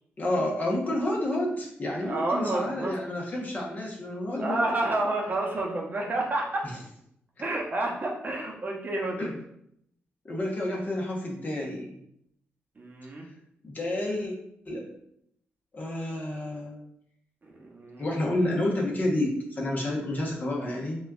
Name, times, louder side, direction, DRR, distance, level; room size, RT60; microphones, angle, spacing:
voice 1, 0.2-4.6 6.6-6.8 7.4-7.5 9.2-9.3 10.2-12.0 13.6-14.3 14.6-14.9 15.7-16.8 18.0-21.0, left 1 dB, 40° left, -2 dB, 0.9 m, -30 dB
voice 2, 2.0-2.9 4.4-6.6 7.4-9.3 12.8-13.2 17.5-18.1, right 2 dB, 40° right, -1 dB, 0.7 m, -29 dB
4.1 x 2.3 x 2.3 m, 0.73 s
cardioid pair, 70°, 4 cm